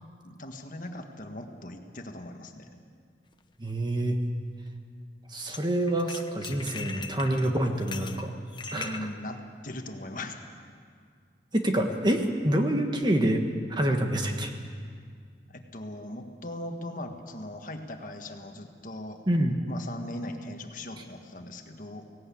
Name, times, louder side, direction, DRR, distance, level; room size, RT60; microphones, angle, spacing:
voice 1, 0.2-2.7 8.7-10.4 15.5-19.2 19.7-22.1, left 1 dB, 45° left, 4 dB, 1.5 m, -39 dB
sound 1, 3.3-3.4 5.5-5.6 5.9-9.0, left 5 dB, 25° left, 0.8 m, -40 dB
voice 2, 3.6-4.2 5.3-8.3 8.7-9.0 11.5-13.4 13.7-14.5 19.3-19.5, right 1 dB, 25° right, 4 dB, 1.4 m, -26 dB
17.5 x 17.5 x 8.5 m, 2.1 s
head